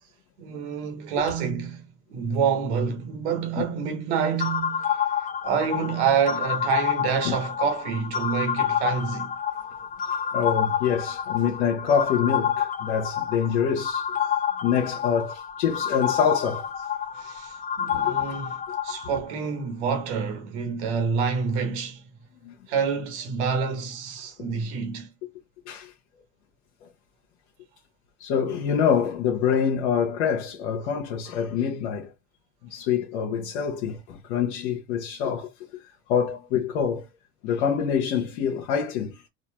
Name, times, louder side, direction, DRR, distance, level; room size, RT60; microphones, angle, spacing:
voice 1, 0.4-5.0 5.4-9.3 17.1-22.0 22.7-25.1, right 6 dB, 80° right, 1.4 m, -27 dB
sound 1, 4.4-19.2, left 8 dB, 25° left, 0.5 m, -28 dB
voice 2, 10.3-14.2 14.6-16.7 18.1-18.2 22.4-22.5 25.7-25.9 28.2-32.1 32.7-35.8 36.1-37.0 37.4-39.2, left 7 dB, 80° left, 0.9 m, -25 dB
4.3 x 2.4 x 2.9 m
supercardioid pair, 95°, 34 cm